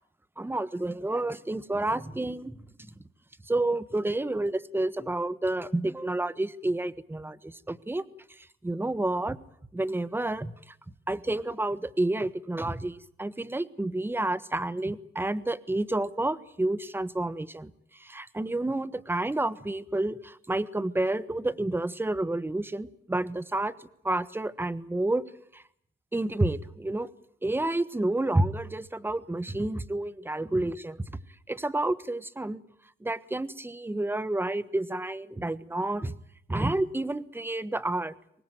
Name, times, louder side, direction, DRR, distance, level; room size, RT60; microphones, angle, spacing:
voice 1, 0.4-2.6 3.5-8.0 8.6-9.4 9.7-10.5 11.1-17.7 18.0-23.7 24.0-25.2 25.5-25.6 26.1-27.1 27.4-31.0 31.5-32.6 33.0-36.1 36.5-38.1, right 2 dB, 10° right, 15 dB, 1.4 m, -29 dB
24.5 x 20.0 x 9.2 m, 0.69 s
cardioid pair, 90°, 20 cm